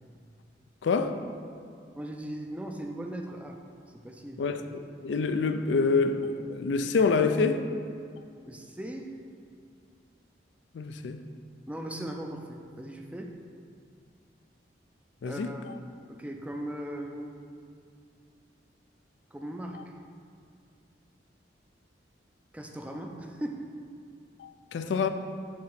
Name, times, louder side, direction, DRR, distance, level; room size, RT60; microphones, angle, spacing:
voice 1, 0.8-1.2 4.4-7.7 10.7-11.2 15.2-15.5 24.4-25.1, left 4 dB, 75° left, 0.4 m, -27 dB
voice 2, 1.9-3.6 3.9-4.4 8.5-9.1 11.7-13.3 15.2-15.6 16.1-17.3 19.3-19.8 22.5-23.6, right 1 dB, 5° right, 0.4 m, -38 dB
7.2 x 2.9 x 5.8 m
head